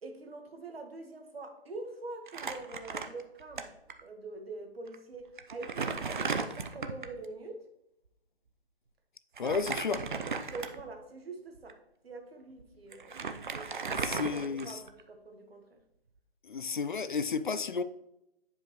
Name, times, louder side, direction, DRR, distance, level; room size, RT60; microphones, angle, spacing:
voice 1, 0.0-3.7 4.0-7.6 9.4-9.8 10.4-11.8 12.0-13.2 13.5-15.8, right 3 dB, 65° right, 1.5 m, -45 dB
Crumpling crinkling, 2.3-3.6 3.9-4.0 4.9-5.0 5.4-7.2 9.4-11.0 11.6-11.7 12.6-12.7 12.9-15.0, right 5 dB, 50° right, 0.7 m, -36 dB
voice 2, 9.4-10.0 13.9-14.8 16.4-17.8, left 5 dB, 50° left, 0.5 m, -32 dB
9.2 x 5.2 x 3.1 m
figure-of-eight pair, 145°, 32 cm